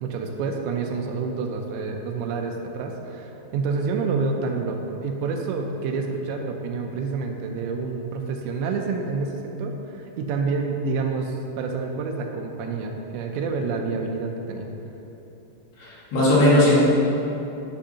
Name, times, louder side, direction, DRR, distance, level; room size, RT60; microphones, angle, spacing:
voice 1, 0.0-14.7, right 4 dB, 80° right, 2 dB, 2.6 m, -28 dB
voice 2, 15.8-16.9, left 1 dB, 65° left, -8 dB, 3.7 m, -18 dB
11.5 x 6.3 x 2.8 m, 3.0 s
omnidirectional pair, 5.3 m